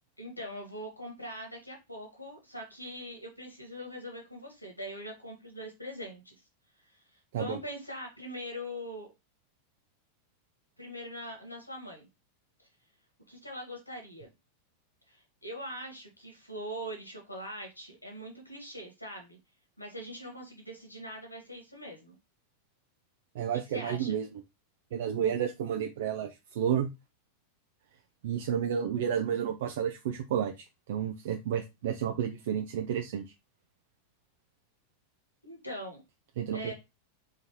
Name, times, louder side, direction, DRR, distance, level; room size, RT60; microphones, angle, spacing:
voice 1, 0.2-6.3 6.8-9.1 10.8-12.1 12.6-12.7 13.3-14.3 15.1-19.4 19.8-22.1 23.7-24.2 35.4-36.0 36.5-36.7, equal, 85° left, 1 dB, 1.7 m, -42 dB
voice 2, 23.3-24.3 24.9-26.9 28.2-33.3 36.4-36.7, right 9 dB, 55° right, 4 dB, 0.6 m, -31 dB
4.0 x 3.8 x 3.0 m, 0.23 s
figure-of-eight pair, 90°, 0 cm